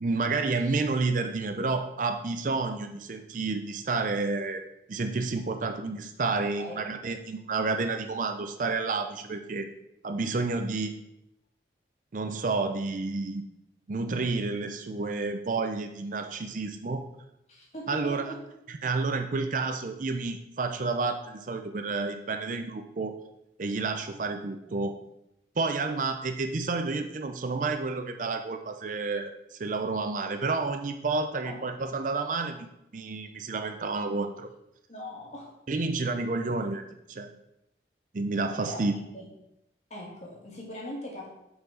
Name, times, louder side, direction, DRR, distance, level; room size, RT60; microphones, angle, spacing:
voice 1, 0.0-4.6 4.9-9.7 10.0-11.0 12.1-13.4 13.9-17.0 17.9-18.3 18.7-23.1 23.6-25.0 25.6-34.5 35.7-36.8 37.1-37.3 38.1-38.9, right 3 dB, 45° right, 7 dB, 0.5 m, -30 dB
voice 2, 17.5-18.4 24.7-24.8 31.4-31.6 34.9-35.5 38.6-38.9 39.1-39.2 39.9-41.3, equal, 35° left, -3 dB, 2.0 m, -40 dB
6.7 x 4.6 x 5.0 m, 0.83 s
head